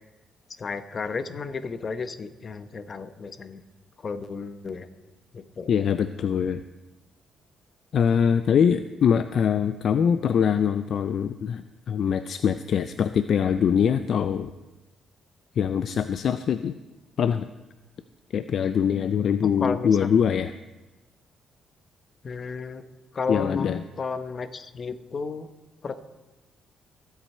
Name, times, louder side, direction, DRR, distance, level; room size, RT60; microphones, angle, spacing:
voice 1, 0.6-3.6 4.0-4.9 5.3-5.7 19.4-20.1 22.2-22.8 23.1-25.5 25.8-26.0, left 4 dB, 35° left, 11 dB, 0.9 m, -33 dB
voice 2, 5.7-6.6 7.9-14.5 15.6-16.7 17.2-17.5 18.3-20.5 23.3-23.8, left 7 dB, 55° left, 11 dB, 0.4 m, -23 dB
22.0 x 8.2 x 4.4 m, 1.1 s
cardioid pair, 120°, 0 cm